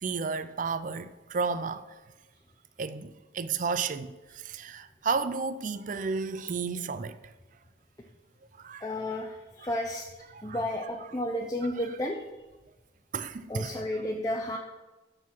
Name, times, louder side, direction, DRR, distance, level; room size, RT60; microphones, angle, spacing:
voice 1, 0.0-1.9 2.8-7.2 8.6-8.8 10.3-10.6 13.1-13.8, right 5 dB, 45° right, 0.4 m, -32 dB
voice 2, 8.8-10.0 10.4-12.2 13.5-14.6, left 1 dB, 20° left, 0.6 m, -32 dB
12.5 x 4.7 x 5.9 m
head